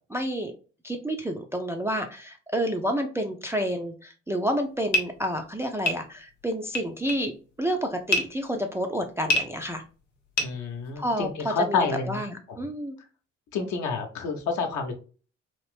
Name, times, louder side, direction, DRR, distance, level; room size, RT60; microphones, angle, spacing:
voice 1, 0.1-0.5 0.8-7.3 7.6-9.8 11.0-13.0, equal, 10° right, 4 dB, 0.3 m, -29 dB
sound 1, 4.5-11.3, left 1 dB, 85° left, 0.5 m, -30 dB
voice 2, 10.4-12.2 13.5-14.9, left 5 dB, 60° left, 4 dB, 0.8 m, -28 dB
2.9 x 2.5 x 3.2 m, 0.37 s
figure-of-eight pair, 40°, 35 cm